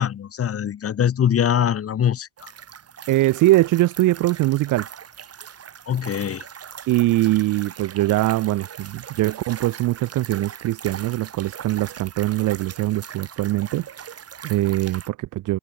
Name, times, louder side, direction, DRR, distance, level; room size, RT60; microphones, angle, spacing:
voice 1, 0.0-2.5 5.9-6.4, left 9 dB, 50° left, 1.3 m, -23 dB
sound 1, 2.4-15.1, right 8 dB, 55° right, 4.7 m, -40 dB
voice 2, 3.1-4.9 6.9-15.6, right 17 dB, 85° right, 1.1 m, -22 dB
cardioid pair, 90°, 30 cm